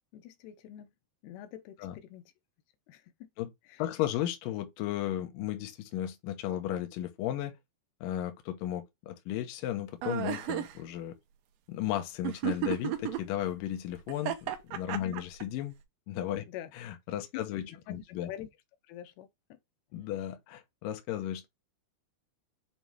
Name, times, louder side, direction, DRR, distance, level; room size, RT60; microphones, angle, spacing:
voice 1, 0.1-0.9 1.2-2.2 2.9-3.3 3.6-3.8 14.9-15.2 16.5-16.7 17.3-17.4 17.7-18.5 18.9-19.6, left 12 dB, 90° left, 2.7 m, -45 dB
voice 2, 3.8-7.5 8.0-11.2 11.7-15.8 16.1-16.4 16.8-18.3 19.9-21.5, left 12 dB, 75° left, 2.3 m, -35 dB
sound 1, 10.0-10.7 12.2-13.2 14.1-15.4, right 12 dB, 80° right, 2.1 m, -32 dB
7.2 x 3.0 x 4.6 m
omnidirectional pair, 4.7 m